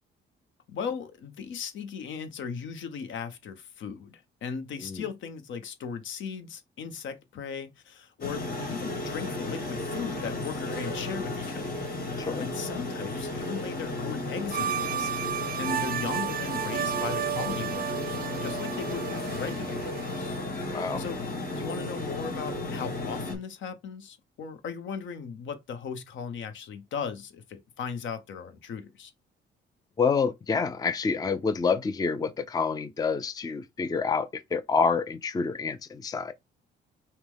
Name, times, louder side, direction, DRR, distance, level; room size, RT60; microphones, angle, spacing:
voice 1, 0.7-11.6 12.4-20.3 21.0-21.2 21.5-29.1, left 6 dB, 75° left, 0.9 m, -37 dB
sound 1, 8.2-23.4, left 2 dB, 50° left, 2.5 m, -34 dB
sound 2, 14.5-20.4, right 10 dB, 45° right, 0.5 m, -33 dB
voice 2, 20.7-21.0 30.0-36.3, left 5 dB, 20° left, 0.4 m, -28 dB
5.7 x 2.1 x 3.5 m
cardioid pair, 90°, 20 cm